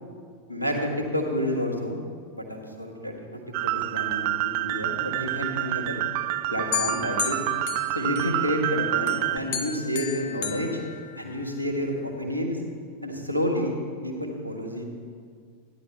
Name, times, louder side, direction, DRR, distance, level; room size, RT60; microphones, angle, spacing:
voice 1, 0.5-2.0 2.3-6.0 6.5-7.4 7.9-10.8 11.1-12.6 13.0-14.8, equal, 90° left, 1 dB, 1.5 m, -29 dB
sound 1, 3.5-9.4, right 15 dB, 45° right, 0.3 m, -28 dB
sound 2, 6.7-8.7 9.1-11.6, left 9 dB, 50° left, 0.9 m, -34 dB
15.0 x 10.0 x 3.2 m, 2.1 s
figure-of-eight pair, 90°, 0 cm